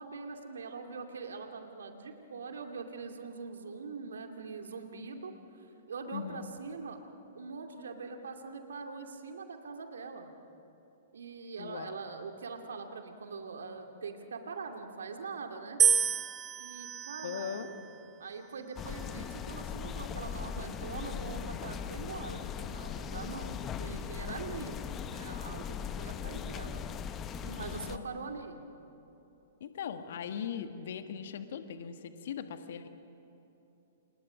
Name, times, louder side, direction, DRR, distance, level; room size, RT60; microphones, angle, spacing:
voice 1, 0.0-7.0 7.3-10.3 11.1-15.8 16.6-17.6 18.2-26.8 27.4-28.6, right 4 dB, 70° right, 4 dB, 2.5 m, -43 dB
voice 2, 6.1-6.5 11.6-12.0 17.2-17.7 23.2-24.4 27.8-28.1 29.6-32.9, left 8 dB, 55° left, 8 dB, 1.7 m, -40 dB
sound 1, 15.8-18.0 18.8-19.3, right 7 dB, 20° right, 0.8 m, -30 dB
sound 2, 18.8-28.0, left 8 dB, 25° left, 1.0 m, -39 dB
29.5 x 29.0 x 5.2 m, 3.0 s
figure-of-eight pair, 110°, 0 cm